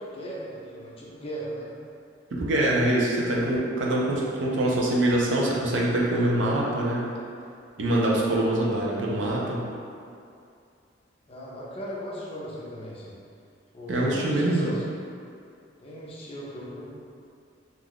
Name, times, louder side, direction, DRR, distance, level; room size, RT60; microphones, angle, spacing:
voice 1, 0.0-1.7 11.3-13.2 13.7-14.8 15.8-17.0, equal, 30° left, -6 dB, 0.5 m, -37 dB
voice 2, 2.3-7.1 7.8-9.7 13.9-14.7, right 1 dB, 75° right, -3 dB, 0.5 m, -24 dB
2.5 x 2.3 x 3.4 m, 2.4 s
head